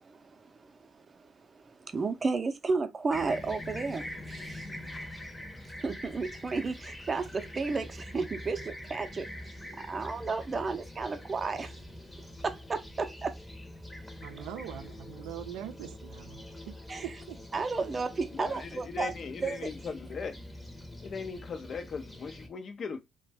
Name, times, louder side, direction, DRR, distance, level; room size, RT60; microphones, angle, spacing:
voice 1, 0.0-4.9 5.8-9.3 9.8-11.8 12.4-13.4 16.9-17.1 17.5-19.1 19.4-19.7, right 4 dB, 30° right, 0.5 m, -33 dB
Fixed-wing aircraft airplane, 3.1-22.5, left 1 dB, 10° left, 0.7 m, -44 dB
voice 2, 14.2-16.7 17.0-17.4, right 11 dB, 90° right, 0.4 m, -42 dB
voice 3, 18.3-20.4 21.0-23.0, left 5 dB, 50° left, 0.5 m, -39 dB
2.5 x 2.2 x 3.2 m
cardioid pair, 85°, 0 cm